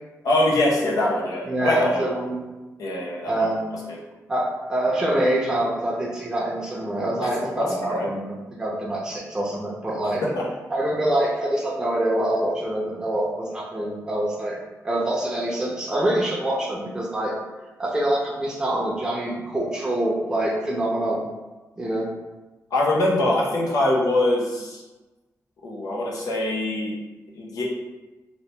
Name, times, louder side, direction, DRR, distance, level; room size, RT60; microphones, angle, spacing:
voice 1, 0.2-2.0 2.8-3.5 3.9-4.0 7.2-7.3 7.6-8.1 10.3-10.4 22.7-24.8 25.6-26.9 27.4-27.6, left 1 dB, 85° left, -4 dB, 0.9 m, -23 dB
voice 2, 1.5-2.4 3.3-3.7 4.3-10.2 10.7-14.6 14.8-17.3 17.8-21.2 21.8-22.1, right 1 dB, 10° right, -4 dB, 0.6 m, -25 dB
2.9 x 2.8 x 3.2 m, 1.1 s
wide cardioid pair, 115°, 6 cm